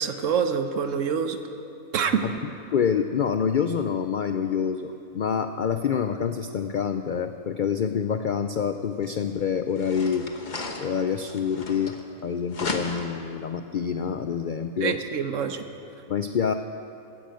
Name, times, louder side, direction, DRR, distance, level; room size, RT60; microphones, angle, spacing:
voice 1, 0.0-1.4 1.9-2.2 14.8-15.6, right 7 dB, 65° right, 8 dB, 1.2 m, -26 dB
voice 2, 2.7-10.3 10.8-11.9 12.2-15.0 16.1-16.5, left 7 dB, 85° left, 8 dB, 0.4 m, -26 dB
sound 1, 9.0-9.1 9.7-12.2 12.5-13.3, left 3 dB, 35° left, 1.1 m, -35 dB
15.0 x 10.5 x 7.7 m, 2.8 s
omnidirectional pair, 1.5 m